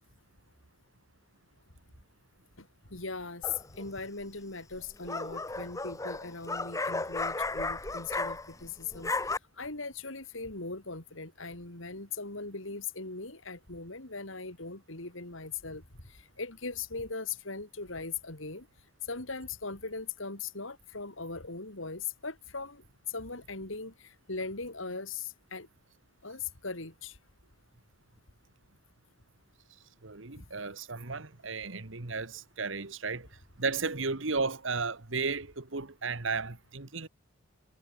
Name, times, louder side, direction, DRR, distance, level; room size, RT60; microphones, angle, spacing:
voice 1, 2.6-9.1 9.6-15.8 16.1-18.7 19.1-25.7 26.2-27.2, left 4 dB, 70° left, 3.5 m, -39 dB
sound 1, 3.4-3.9 4.8-8.7 8.9-9.4, left 3 dB, 15° left, 0.9 m, -34 dB
voice 2, 30.0-37.1, right 4 dB, 65° right, 1.6 m, -34 dB
head